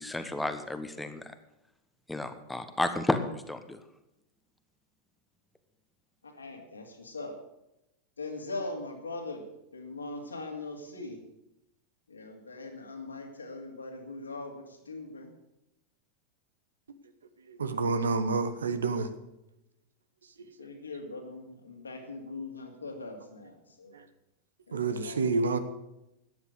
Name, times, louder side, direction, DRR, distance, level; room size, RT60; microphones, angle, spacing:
voice 1, 0.0-1.3 2.1-3.8, left 1 dB, 5° left, 1.2 m, -32 dB
voice 2, 6.2-7.4 8.2-11.2 12.1-15.3 20.4-24.0 24.7-25.4, left 2 dB, 75° left, 2.5 m, -41 dB
voice 3, 17.5-19.1 20.4-20.7 23.9-24.0 24.7-25.6, right 4 dB, 70° right, 1.1 m, -29 dB
13.5 x 9.7 x 6.6 m
figure-of-eight pair, 90°, 0 cm